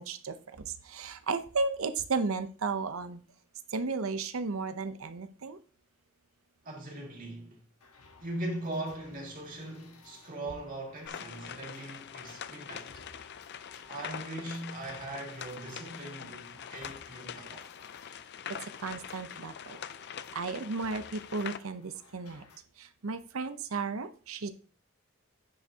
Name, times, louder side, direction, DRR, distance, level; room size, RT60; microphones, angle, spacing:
voice 1, 0.0-3.2 3.7-5.6 18.5-19.8 20.3-22.4 22.8-24.5, right 4 dB, 70° right, 0.7 m, -34 dB
voice 2, 6.6-7.6 8.2-13.0 13.9-17.7, right 1 dB, 40° right, 2.2 m, -40 dB
sound 1, 7.8-22.6, left 4 dB, 90° left, 1.3 m, -57 dB
sound 2, 11.0-21.6, left 8 dB, 50° left, 0.4 m, -44 dB
9.7 x 6.0 x 2.8 m
head